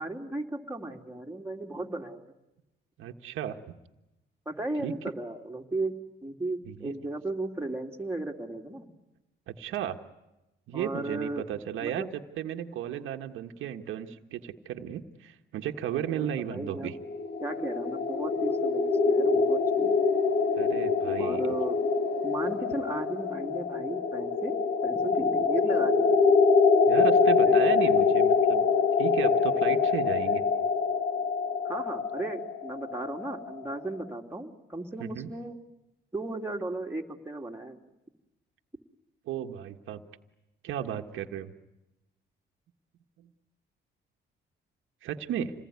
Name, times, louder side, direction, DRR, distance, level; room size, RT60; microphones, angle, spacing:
voice 1, 0.0-2.2 4.4-5.9 6.2-8.9 10.7-11.4 11.8-12.1 16.1-16.9 17.4-19.9 21.2-21.8 22.2-24.5 24.8-26.4 27.4-27.6 31.6-35.6 36.1-37.8, right 2 dB, 10° right, 1 dB, 3.1 m, -35 dB
voice 2, 3.0-3.8 4.8-4.9 6.7-6.9 9.5-9.9 10.7-17.0 20.6-21.5 26.9-28.7 29.0-30.4 35.0-35.3 39.3-40.0 40.6-41.5 45.0-45.5, right 10 dB, 85° right, 5 dB, 1.5 m, -34 dB
sound 1, 16.8-33.7, left 5 dB, 55° left, 2.1 m, -25 dB
27.5 x 20.0 x 9.6 m, 0.96 s
cardioid pair, 90°, 20 cm